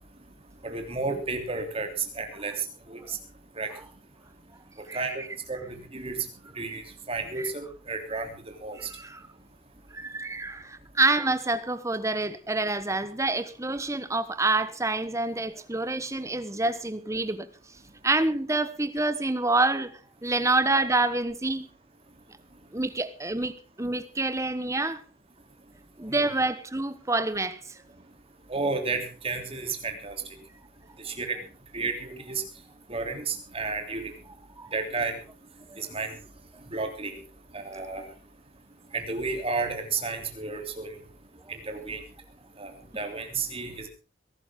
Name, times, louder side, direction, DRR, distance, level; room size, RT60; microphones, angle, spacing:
voice 1, 0.7-1.9 2.2-2.5 2.9-3.0 3.6-3.7 4.9-6.2 6.6-6.8 7.1-8.3 8.6-8.8 28.5-30.1 31.1-31.3 31.7-32.4 32.9-34.0 34.7-35.1 35.8-36.1 36.7-37.1 37.5-38.0 38.9-40.9 41.7-42.0 42.6-43.9, right 4 dB, 30° right, 3.2 m, -32 dB
voice 2, 4.9-5.3 7.4-7.5 8.8-9.2 9.9-17.5 18.0-21.7 22.7-25.0 26.0-27.8 34.6-34.7 35.7-35.8, right 2 dB, 15° right, 1.1 m, -27 dB
22.0 x 12.0 x 3.8 m
head